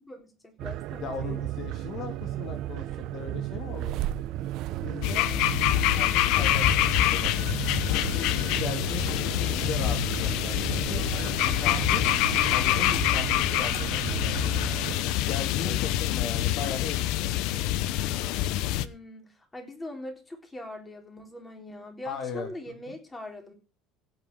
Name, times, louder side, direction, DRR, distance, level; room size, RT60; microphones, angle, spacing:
voice 1, 0.0-1.5 13.9-14.3 15.6-16.0 18.8-23.5, left 1 dB, 10° left, 4 dB, 3.8 m, -42 dB
sound 1, 0.6-15.0, right 14 dB, 60° right, 0.8 m, -34 dB
voice 2, 1.0-2.9 3.1-4.0 4.8-5.3 5.7-6.7 7.1-7.5 8.0-11.0 11.4-12.1 12.5-14.6 15.2-17.9 22.0-23.0, left 5 dB, 50° left, 6 dB, 2.5 m, -38 dB
sound 2, 5.0-18.9, left 14 dB, 70° left, 0.9 m, -26 dB
16.5 x 5.6 x 7.0 m, 0.33 s
cardioid pair, 145°, 0 cm